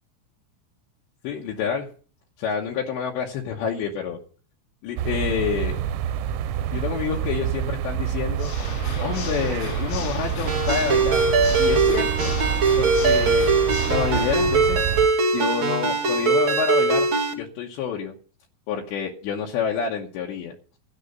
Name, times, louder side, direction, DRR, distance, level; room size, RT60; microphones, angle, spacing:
voice 1, 1.2-1.9 2.4-4.2 4.8-5.8 6.7-8.5 9.0-11.3 11.6-12.3 12.8-13.5 13.9-14.8 15.3-17.1 17.4-18.1 18.7-20.5, left 7 dB, 70° left, 0 dB, 3.0 m, -28 dB
sound 1, 5.0-15.1, right 9 dB, 85° right, 3.5 m, -27 dB
Water / Mechanisms, 8.3-14.3, left 7 dB, 90° left, 5.3 m, -35 dB
Ringtone, 10.5-17.3, right 4 dB, 60° right, 1.2 m, -21 dB
13.5 x 11.0 x 5.4 m, 0.42 s
omnidirectional pair, 5.9 m